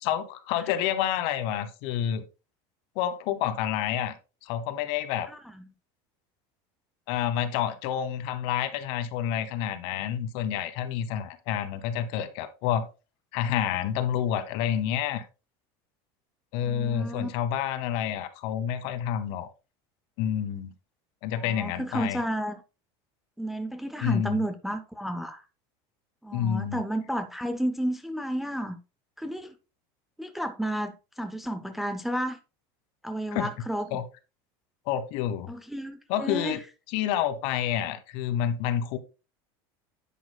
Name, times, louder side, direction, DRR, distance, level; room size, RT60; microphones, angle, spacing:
voice 1, 0.0-2.2 2.9-4.1 4.4-5.3 7.1-12.9 13.3-15.3 16.5-19.5 20.2-20.7 21.2-22.2 24.0-24.4 26.3-26.8 33.3-33.5 33.9-34.0 34.9-35.5 36.1-36.6 36.9-39.0, left 10 dB, 55° left, 1.0 m, -29 dB
voice 2, 5.3-5.7 16.6-17.4 21.4-22.6 23.4-25.4 26.2-28.8 29.2-29.5 30.2-32.4 33.0-34.0 35.5-36.6, right 1 dB, ahead, 0.4 m, -32 dB
10.0 x 7.0 x 2.2 m
cardioid pair, 165°, 12 cm